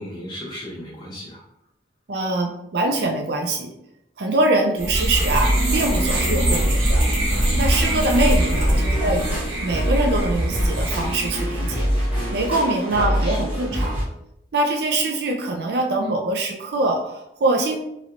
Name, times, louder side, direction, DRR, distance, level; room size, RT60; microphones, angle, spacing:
voice 1, 0.0-1.4 8.6-9.3 12.9-13.6, equal, 25° left, -8 dB, 1.3 m, -36 dB
voice 2, 2.1-3.7 4.2-7.1 7.6-11.9 12.3-14.0 14.5-17.8, right 2 dB, 55° right, 2 dB, 0.4 m, -23 dB
sound 1, 4.8-11.4, right 1 dB, 85° right, 1.0 m, -23 dB
sound 2, 4.9-14.0, equal, 10° right, 1.1 m, -25 dB
3.0 x 3.0 x 2.5 m, 0.80 s
head